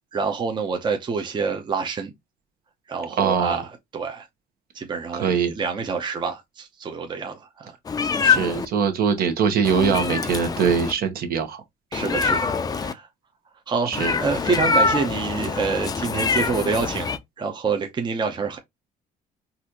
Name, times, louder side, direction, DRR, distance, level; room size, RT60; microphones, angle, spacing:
voice 1, 0.1-2.1 2.9-3.6 3.9-4.3 4.7-7.7 11.9-12.5 12.8-13.1 13.7-17.1 17.4-18.6, right 5 dB, 25° right, 0.7 m, -27 dB
voice 2, 3.2-3.6 5.1-5.5 8.2-11.6 13.9-14.2, right 6 dB, 60° right, 1.0 m, -22 dB
Meow, 7.8-8.6 9.6-10.9 11.9-12.9 13.9-17.2, left 5 dB, 20° left, 0.4 m, -24 dB
4.1 x 2.5 x 2.8 m
cardioid pair, 110°, 17 cm